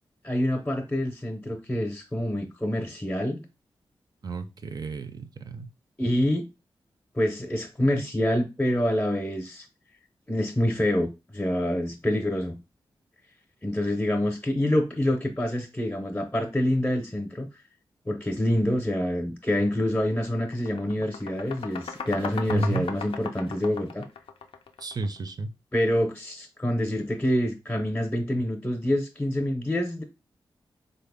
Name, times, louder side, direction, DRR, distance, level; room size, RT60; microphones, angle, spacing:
voice 1, 0.2-3.4 6.0-6.4 7.1-9.7 10.3-12.6 13.6-17.5 18.1-24.0 25.7-30.0, left 1 dB, 15° left, 0.6 m, -26 dB
voice 2, 4.2-5.7 22.5-22.9 24.8-25.5, right 2 dB, 45° right, 0.4 m, -31 dB
sound 1, 19.7-19.9 20.2-25.2, left 5 dB, 90° left, 0.4 m, -37 dB
3.8 x 2.0 x 3.4 m
cardioid pair, 75°, 9 cm